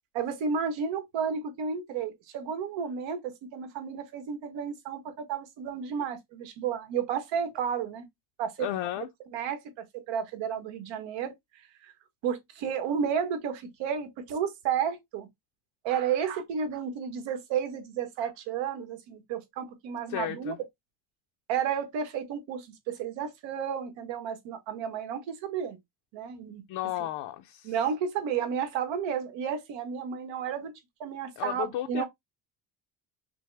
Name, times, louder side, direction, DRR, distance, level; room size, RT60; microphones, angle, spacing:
voice 1, 0.1-8.1 8.4-8.7 9.0-9.1 9.3-11.9 12.2-15.3 15.8-20.5 21.5-25.8 26.1-26.6 27.6-30.7 31.0-32.0, right 7 dB, 85° right, 1.4 m, -32 dB
voice 2, 8.6-9.1 20.1-20.6 26.7-27.7 31.4-32.0, left 13 dB, 65° left, 0.6 m, -33 dB
6.0 x 2.1 x 3.3 m
cardioid pair, 175°, 44 cm